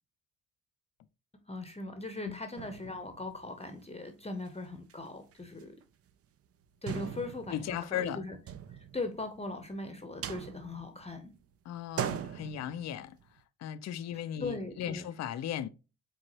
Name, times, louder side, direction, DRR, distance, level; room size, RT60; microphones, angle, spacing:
voice 1, 1.5-5.7 6.8-8.4 8.7-11.3 14.4-15.1, left 2 dB, 15° left, 0.8 m, -39 dB
sound 1, 2.6-3.9 4.4-4.5 4.8-4.9 5.3-5.8 6.1-6.2 6.9-9.6 10.0-11.4 11.7-13.4, right 9 dB, 35° right, 0.5 m, -41 dB
voice 2, 7.5-8.2 11.7-13.2 13.6-15.7, left 10 dB, 45° left, 0.5 m, -36 dB
4.6 x 3.7 x 2.9 m
hypercardioid pair, 50°, 40 cm